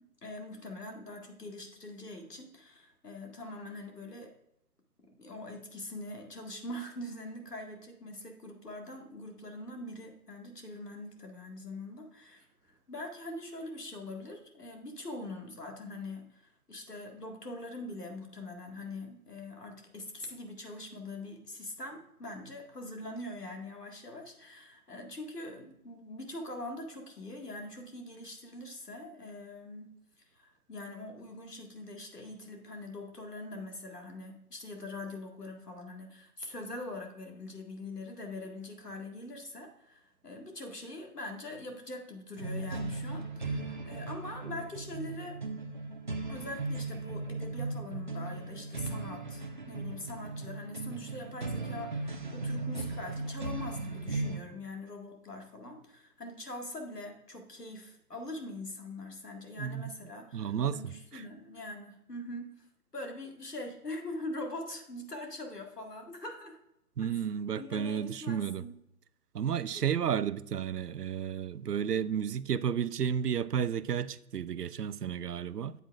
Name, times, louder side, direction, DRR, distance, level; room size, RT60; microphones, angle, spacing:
voice 1, 0.2-4.3 5.2-29.9 30.3-45.4 46.3-62.7 62.9-66.6 67.6-68.7 69.7-69.8, left 2 dB, 85° left, 2.0 m, -43 dB
sound 1, 42.4-54.4, right 3 dB, 35° right, 0.5 m, -37 dB
voice 2, 59.6-59.9 60.3-61.2 67.0-68.6 69.3-75.7, right 8 dB, 85° right, 0.6 m, -32 dB
8.3 x 8.1 x 2.4 m
figure-of-eight pair, 140°, 46 cm